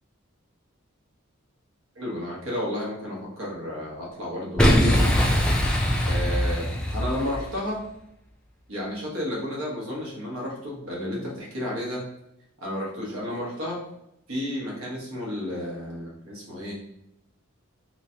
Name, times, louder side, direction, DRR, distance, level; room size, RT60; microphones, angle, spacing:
voice 1, 2.0-5.1 6.0-7.8 8.7-12.1 12.6-13.8 14.3-16.8, left 1 dB, 80° right, -3 dB, 1.2 m, -32 dB
Boom, 4.6-7.6, equal, 5° left, 0.4 m, -21 dB
3.0 x 3.0 x 2.7 m, 0.80 s
head